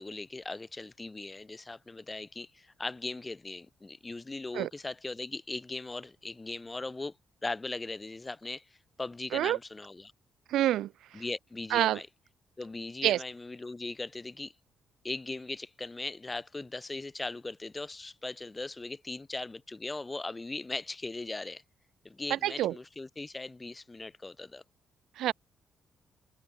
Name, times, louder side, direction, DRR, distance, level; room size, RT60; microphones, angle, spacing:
voice 1, 0.0-7.1 7.4-10.1 11.1-12.1 12.6-14.5 15.0-21.6 22.0-24.6, left 3 dB, 20° left, 2.8 m, -39 dB
voice 2, 10.5-10.9 11.7-12.0 13.0-13.2 22.3-22.7 25.2-25.3, right 13 dB, 80° right, 0.3 m, -27 dB
cardioid pair, 90°, 0 cm